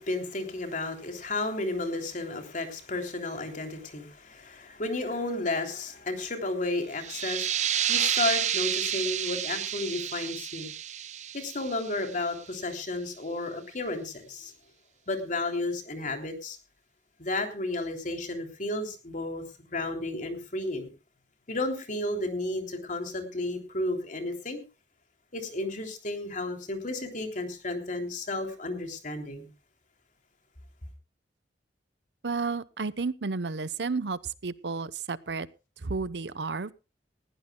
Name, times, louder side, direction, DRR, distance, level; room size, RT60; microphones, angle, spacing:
voice 1, 0.0-10.7 11.3-14.5 15.1-16.6 17.2-19.4 19.7-20.9 21.5-24.6 25.3-29.5, left 2 dB, 45° left, 5 dB, 3.1 m, -32 dB
sound 1, 7.0-12.4, right 10 dB, 40° right, 0.6 m, -30 dB
voice 2, 32.2-35.5 35.8-36.7, right 4 dB, 75° right, 17 dB, 0.8 m, -32 dB
20.5 x 15.5 x 2.2 m, 0.30 s
head